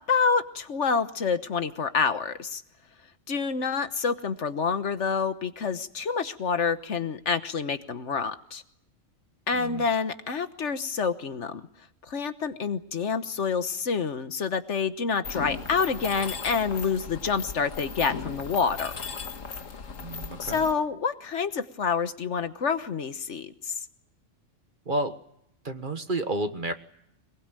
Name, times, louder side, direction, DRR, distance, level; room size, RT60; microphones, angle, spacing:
voice 1, 0.0-2.6 3.3-8.6 9.5-11.7 12.1-18.9 20.4-23.7, left 5 dB, 65° left, 11 dB, 1.5 m, -27 dB
voice 2, 9.5-9.9 20.0-20.6 24.9-25.1 25.6-26.7, right 2 dB, 40° right, 9 dB, 1.5 m, -30 dB
Mechanisms, 15.2-20.7, left 5 dB, 90° left, 1.9 m, -37 dB
23.0 x 22.0 x 9.0 m, 0.73 s
omnidirectional pair, 1.3 m